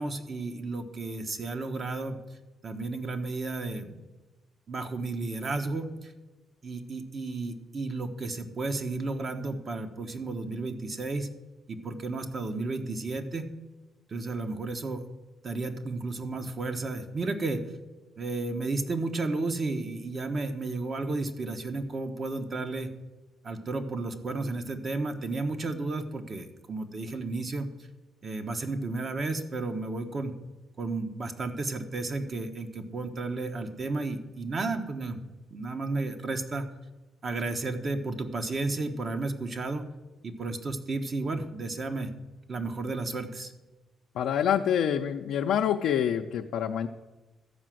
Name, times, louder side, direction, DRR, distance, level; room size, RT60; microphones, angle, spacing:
voice 1, 0.0-2.2 2.6-4.0 4.7-6.1 6.6-11.3 11.7-13.5 14.1-15.0 15.4-17.6 18.2-22.9 23.4-27.7 28.2-30.3 30.8-35.2 35.5-36.7 37.2-39.9 40.2-42.1 42.5-43.5, right 3 dB, 45° right, 7 dB, 1.2 m, -33 dB
voice 2, 44.1-46.9, left 9 dB, 80° left, 2 dB, 0.5 m, -26 dB
13.0 x 5.0 x 7.7 m, 1.1 s
cardioid pair, 90°, 0 cm